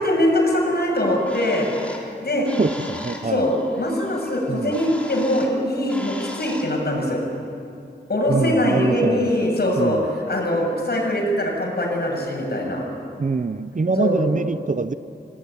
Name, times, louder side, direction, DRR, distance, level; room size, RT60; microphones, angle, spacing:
voice 1, 0.0-1.7 2.2-2.5 3.2-7.2 8.1-10.0 10.3-12.8 13.9-14.3, left 1 dB, 60° left, 0 dB, 7.0 m, -22 dB
Bird, 0.9-6.8, left 1 dB, 5° left, 4.1 m, -39 dB
voice 2, 2.6-3.5 4.5-4.7 8.3-9.3 9.8-10.0 13.2-14.9, right 4 dB, 45° right, 13 dB, 0.8 m, -24 dB
26.5 x 19.0 x 9.9 m, 2.6 s
wide cardioid pair, 75°, 18 cm